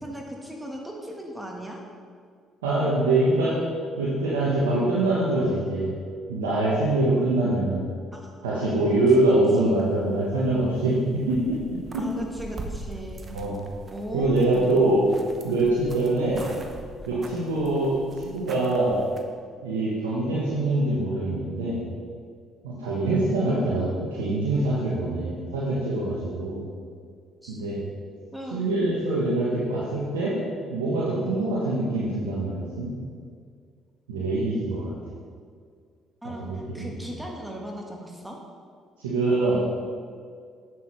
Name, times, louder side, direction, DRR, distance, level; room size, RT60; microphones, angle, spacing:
voice 1, 0.0-1.8 8.1-8.3 8.6-8.7 9.2-9.3 12.0-13.4 13.9-15.1 27.4-27.6 28.3-28.9 36.2-38.4, equal, 10° right, 0 dB, 1.4 m, -37 dB
voice 2, 2.6-3.6 4.0-5.9 6.3-7.8 8.4-11.6 11.9-12.0 13.3-13.6 14.1-15.0 15.4-16.4 17.1-19.0 19.6-21.8 22.6-26.7 27.5-27.8 28.5-30.3 30.7-32.9 34.1-34.9 36.4-36.9 39.0-39.5, right 2 dB, 85° right, -7 dB, 1.0 m, -24 dB
sound 1, 9.8-10.9 11.2-19.2, right 2 dB, 40° right, 0.9 m, -42 dB
9.3 x 6.1 x 3.2 m, 2.1 s
hypercardioid pair, 50°, 0 cm